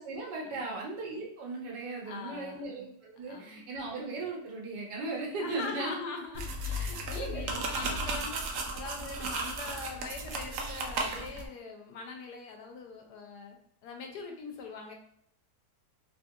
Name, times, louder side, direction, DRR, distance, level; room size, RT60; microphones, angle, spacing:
voice 1, 0.0-5.9 6.8-7.7, right 3 dB, 85° right, -2 dB, 1.4 m, -37 dB
voice 2, 2.0-2.6 3.3-3.6 5.4-8.4 8.7-13.6 13.8-14.9, left 4 dB, 75° left, 3 dB, 1.2 m, -42 dB
sound 1, 6.3-11.5, right 2 dB, 70° right, 0.8 m, -35 dB
3.4 x 2.7 x 2.4 m, 0.68 s
omnidirectional pair, 1.8 m